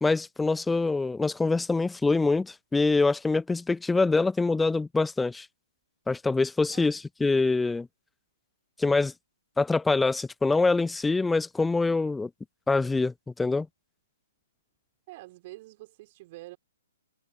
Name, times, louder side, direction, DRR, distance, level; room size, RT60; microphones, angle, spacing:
voice 1, 0.0-5.5 6.1-7.9 8.8-9.1 9.6-12.3 12.7-13.7, left 3 dB, 5° left, 0.4 m, -25 dB
voice 2, 15.1-16.6, right 19 dB, 35° right, 4.9 m, -46 dB
open air
figure-of-eight pair, 125°, 0 cm